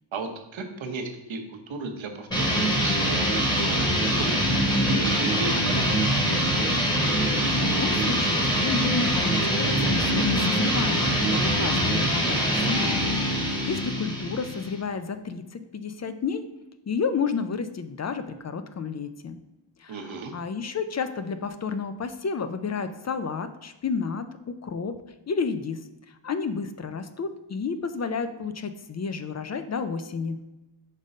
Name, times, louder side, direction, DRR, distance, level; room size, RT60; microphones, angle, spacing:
voice 1, 0.1-5.9 19.9-20.3, right 4 dB, 75° right, 5 dB, 1.0 m, -35 dB
sound 1, 2.3-14.8, equal, 10° left, 1.3 m, -24 dB
voice 2, 7.2-16.4 16.9-19.4 19.8-24.9 25.3-30.4, left 5 dB, 35° left, 10 dB, 0.4 m, -31 dB
5.3 x 3.8 x 5.3 m, 0.98 s
wide cardioid pair, 145°, 47 cm